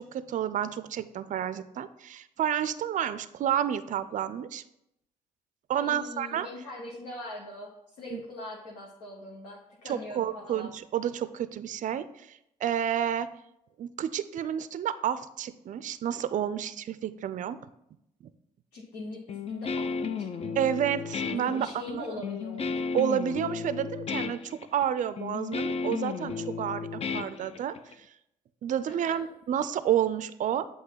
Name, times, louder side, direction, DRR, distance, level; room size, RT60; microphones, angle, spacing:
voice 1, 0.0-4.6 5.7-6.5 8.1-8.2 9.9-13.3 13.8-17.6 20.6-22.1 22.9-28.1 28.6-30.7, right 9 dB, 45° right, 14 dB, 0.4 m, -30 dB
voice 2, 5.8-7.7 8.0-10.7 18.7-20.6 21.3-22.8 28.9-29.3, left 2 dB, 75° left, -2 dB, 1.0 m, -41 dB
Guitar, 19.3-27.9, left 5 dB, 35° left, 0.5 m, -33 dB
7.9 x 2.7 x 5.6 m, 0.81 s
hypercardioid pair, 50°, 19 cm